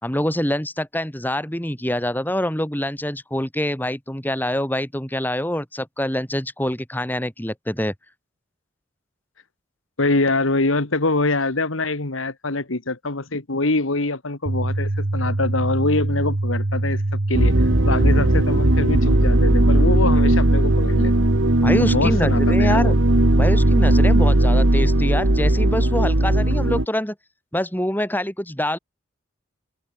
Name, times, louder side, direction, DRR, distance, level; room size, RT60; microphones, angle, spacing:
voice 1, 0.0-7.9 21.6-22.9 23.4-27.2 27.5-28.8, left 1 dB, 10° left, 4.2 m, -25 dB
voice 2, 10.0-17.0 17.3-21.3 21.8-23.0, left 2 dB, 90° left, 2.1 m, -24 dB
sound 1, 14.5-24.5, right 1 dB, 50° right, 1.1 m, -24 dB
sound 2, 17.3-26.8, right 1 dB, 70° right, 2.0 m, -18 dB
open air
head